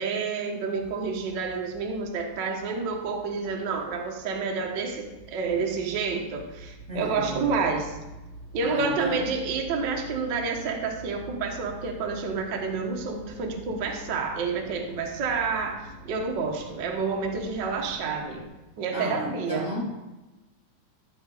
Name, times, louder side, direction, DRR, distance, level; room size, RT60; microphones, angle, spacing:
voice 1, 0.0-8.0 8.5-18.5 18.8-19.7, right 5 dB, 70° right, 2 dB, 1.0 m, -29 dB
sound 1, 0.7-18.5, right 1 dB, ahead, 2.8 m, -47 dB
voice 2, 6.9-7.5 8.6-9.3 18.9-19.8, equal, 45° right, -6 dB, 0.9 m, -33 dB
13.0 x 4.8 x 4.9 m, 1.1 s
omnidirectional pair, 4.0 m